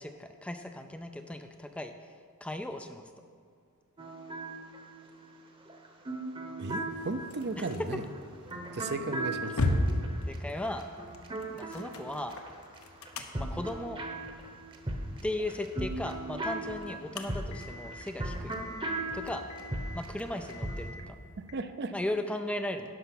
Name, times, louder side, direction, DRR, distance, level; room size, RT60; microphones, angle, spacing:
voice 1, 0.0-1.9 2.4-3.0 7.6-7.7 10.3-10.9 11.6-12.4 13.4-14.0 15.2-18.5 19.1-19.4 19.9-21.2 21.9-22.9, left 1 dB, 5° left, 7 dB, 0.3 m, -36 dB
sound 1, 4.0-12.8 13.1-20.9, right 1 dB, 25° right, 0.9 m, -38 dB
voice 2, 6.6-8.0 8.7-9.6 21.5-21.9, right 3 dB, 50° right, 10 dB, 0.5 m, -35 dB
sound 2, 6.9-21.5, left 1 dB, 70° left, 0.8 m, -39 dB
11.0 x 5.6 x 5.9 m, 2.2 s
head